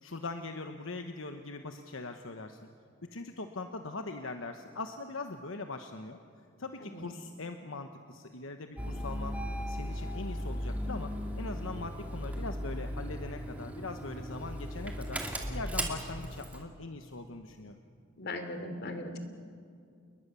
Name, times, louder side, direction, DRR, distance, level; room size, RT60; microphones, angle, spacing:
voice 1, 0.0-2.6 3.0-6.2 6.6-9.4 9.7-15.2 15.5-17.8, left 3 dB, 80° left, 6 dB, 1.2 m, -41 dB
Engine starting, 8.8-16.6, equal, 5° right, 2.8 m, -37 dB
voice 2, 18.2-19.2, left 2 dB, 55° left, 7 dB, 3.0 m, -39 dB
29.0 x 21.5 x 6.9 m, 2.3 s
head